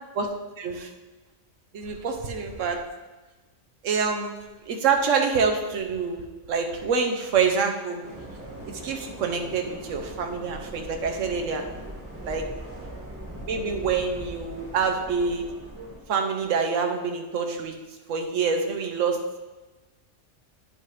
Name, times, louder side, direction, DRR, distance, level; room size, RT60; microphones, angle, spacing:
voice 1, 0.1-0.9 1.7-2.8 3.8-4.3 4.7-8.0 8.7-11.6 12.2-12.5 13.5-15.5 16.1-17.7 18.1-19.2, right 5 dB, 90° right, 4 dB, 1.1 m, -26 dB
sound 1, 8.0-16.0, right 1 dB, 10° right, 1.7 m, -40 dB
9.8 x 5.6 x 3.2 m, 1.2 s
omnidirectional pair, 1.3 m